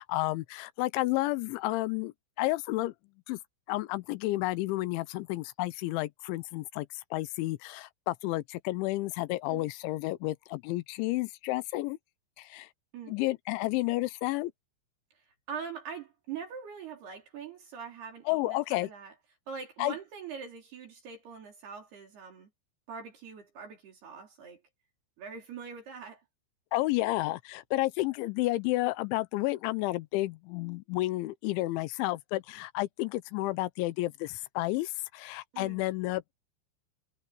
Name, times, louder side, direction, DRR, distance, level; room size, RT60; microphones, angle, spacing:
voice 1, 0.0-2.9 3.3-3.4 3.7-12.0 12.4-12.7 13.1-14.5 18.3-18.9 19.8-19.9 26.7-36.3, left 19 dB, 90° left, 3.2 m, -31 dB
voice 2, 15.2-19.1 19.5-22.5 22.9-24.6 25.2-26.2 35.5-35.8, right 6 dB, 60° right, 5.3 m, -43 dB
omnidirectional pair, 5.2 m